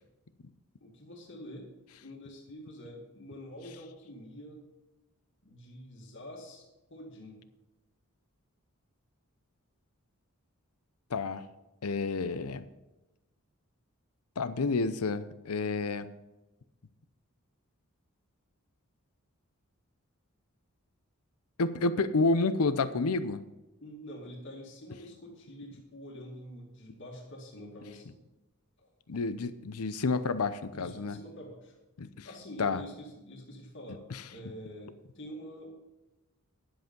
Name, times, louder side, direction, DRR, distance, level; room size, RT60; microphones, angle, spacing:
voice 1, 0.8-1.7 2.0-4.6 5.4-6.6 6.9-7.4 23.8-28.2 28.8-28.9 30.7-31.7 32.2-35.7, equal, 55° left, -1 dB, 2.1 m, -46 dB
voice 2, 11.1-11.4 11.8-12.6 14.4-16.1 21.6-23.4 29.1-31.2 32.0-32.3 32.6-32.8 34.1-34.2, left 3 dB, 80° left, 14 dB, 0.6 m, -29 dB
10.5 x 7.8 x 5.3 m, 1.0 s
head